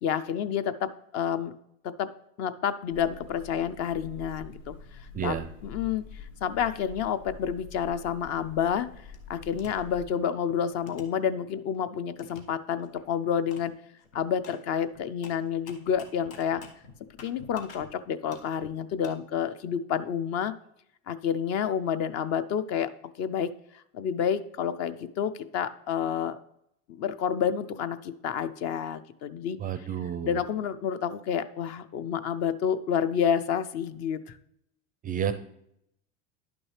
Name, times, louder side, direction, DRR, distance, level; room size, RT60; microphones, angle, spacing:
voice 1, 0.0-1.5 1.8-2.1 2.4-5.3 5.6-6.0 6.4-8.9 9.3-13.7 14.1-16.6 17.2-20.5 21.1-22.9 23.2-23.5 23.9-26.4 27.0-29.6 30.2-34.4, left 8 dB, 40° left, 13 dB, 0.5 m, -29 dB
sound 1, 2.9-10.1, left 5 dB, 70° left, 1.8 m, -46 dB
voice 2, 5.1-5.5 29.6-30.4 35.0-35.3, right 8 dB, 25° right, 11 dB, 0.4 m, -30 dB
sound 2, 9.1-9.7 10.2-11.8 12.2-12.4 12.8-13.0 13.5-13.7 13.9-17.9 18.2-19.1, left 4 dB, 90° left, 1.4 m, -49 dB
10.5 x 6.1 x 3.2 m, 0.76 s
supercardioid pair, 115°, 39 cm